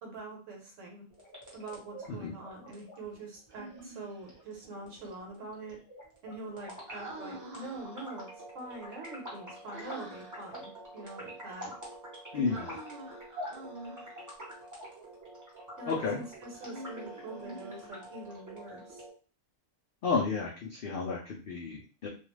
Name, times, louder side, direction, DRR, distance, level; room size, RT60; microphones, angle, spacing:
voice 1, 0.0-1.0 1.5-5.8 6.2-8.3 8.5-11.7 12.3-12.7 15.8-19.0, right 2 dB, 65° right, 1 dB, 1.1 m, -44 dB
sound 1, 1.1-19.1, equal, 15° right, 0.7 m, -46 dB
Human voice, 3.5-4.4 6.9-8.2 9.7-10.5 12.5-14.3 16.5-18.2, right 1 dB, 50° right, 0.9 m, -47 dB
voice 2, 12.3-12.8 15.9-16.2 20.0-22.1, left 4 dB, 75° left, -1 dB, 0.5 m, -32 dB
2.4 x 2.3 x 3.1 m, 0.38 s
omnidirectional pair, 1.5 m